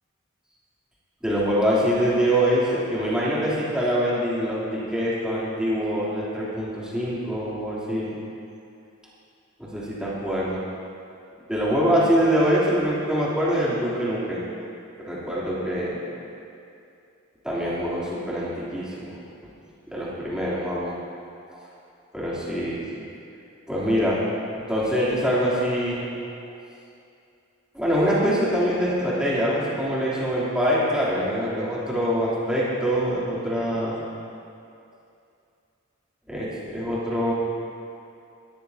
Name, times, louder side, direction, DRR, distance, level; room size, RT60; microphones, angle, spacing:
voice 1, 1.2-8.2 9.6-10.6 11.5-14.4 15.1-16.1 17.4-19.1 19.9-21.0 21.5-21.6 22.1-23.0 23.7-24.2 24.7-26.1 27.7-34.1 36.3-37.3, equal, 5° right, -9 dB, 3.3 m, -24 dB
19.5 x 14.0 x 2.9 m, 2.6 s
head